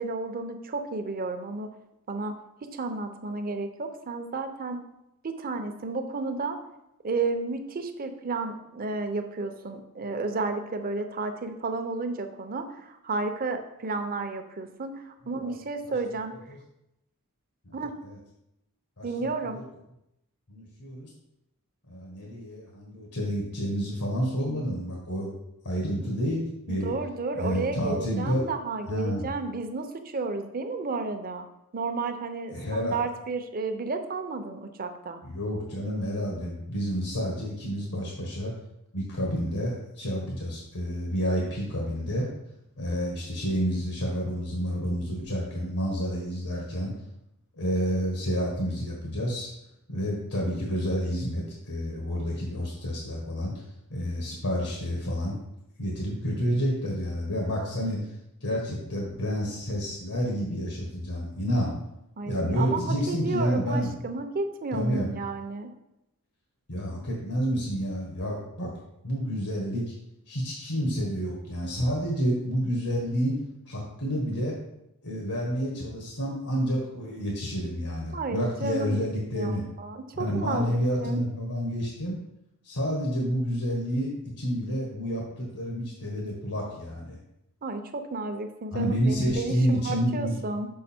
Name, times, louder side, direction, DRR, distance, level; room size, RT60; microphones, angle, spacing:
voice 1, 0.0-1.7 2.1-4.8 5.2-6.6 7.0-16.3 17.7-17.9 19.0-19.6 26.7-31.5 31.7-35.2 62.2-65.7 78.1-81.2 87.6-90.7, right 3 dB, 40° right, 7 dB, 0.7 m, -32 dB
voice 2, 15.2-15.5 15.8-15.9 17.6-17.7 18.0-18.2 19.0-19.6 20.5-21.1 21.9-25.3 25.6-26.9 27.3-28.4 28.9-29.2 32.5-32.9 35.2-38.5 38.9-42.3 42.8-46.9 47.5-49.5 49.9-53.6 53.9-55.4 55.8-58.1 58.4-61.7 62.3-64.0 64.7-65.1 66.7-68.7 69.0-69.8 70.3-73.4 73.7-74.5 75.0-79.6 80.1-82.1 82.6-84.1 84.4-87.2 88.7-90.4, equal, 85° left, -2 dB, 1.5 m, -29 dB
6.5 x 5.5 x 4.4 m, 0.85 s
head